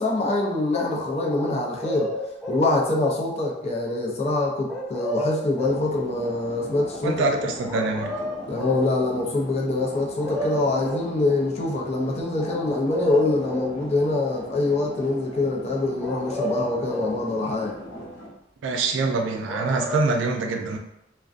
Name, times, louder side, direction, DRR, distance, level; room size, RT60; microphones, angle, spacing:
voice 1, 0.0-2.1 2.5-7.5 8.5-17.7, left 2 dB, 35° left, -2 dB, 0.4 m, -24 dB
sound 1, 1.3-2.7 4.7-5.9 7.7-8.9 9.9-10.0 10.2-11.1 12.4-13.8 16.0-17.2 19.5-20.0, equal, ahead, 0.7 m, -31 dB
sound 2, 5.6-18.3, equal, 75° left, 0.8 m, -39 dB
voice 2, 7.0-8.1 18.6-20.8, right 3 dB, 85° right, 3 dB, 0.3 m, -24 dB
2.4 x 2.1 x 2.4 m, 0.87 s
head